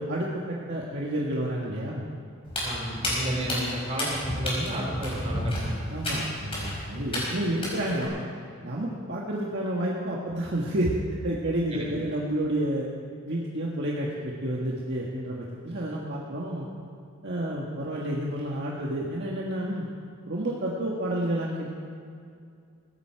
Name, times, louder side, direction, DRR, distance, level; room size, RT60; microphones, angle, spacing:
voice 1, 0.0-2.1 5.9-8.2 8.6-10.9 11.2-12.9 13.3-16.7 17.2-19.9 20.3-21.7, right 1 dB, 55° right, -3 dB, 1.7 m, -30 dB
Walk footsteps, 2.5-8.1, left 1 dB, 25° left, 5.2 m, -31 dB
voice 2, 2.6-5.8 11.7-11.9, right 1 dB, 30° right, -2 dB, 4.2 m, -32 dB
18.5 x 16.0 x 4.7 m, 2.4 s
head